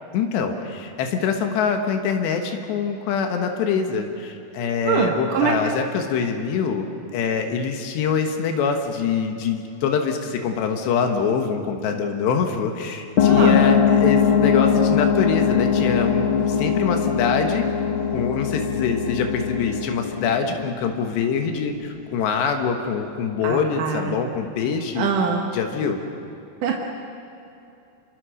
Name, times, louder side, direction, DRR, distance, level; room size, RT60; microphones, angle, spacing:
voice 1, 0.1-6.9 7.1-17.7 18.1-25.1 25.5-26.0, left 6 dB, 85° left, 5 dB, 3.6 m, -24 dB
voice 2, 4.9-5.5 13.2-13.6 23.4-24.2 25.0-25.5 26.6-26.8, right 6 dB, 60° right, 1 dB, 2.7 m, -23 dB
sound 1, 13.2-21.3, left 7 dB, 60° left, 1.4 m, -21 dB
28.5 x 23.0 x 6.5 m, 2.7 s
omnidirectional pair, 4.8 m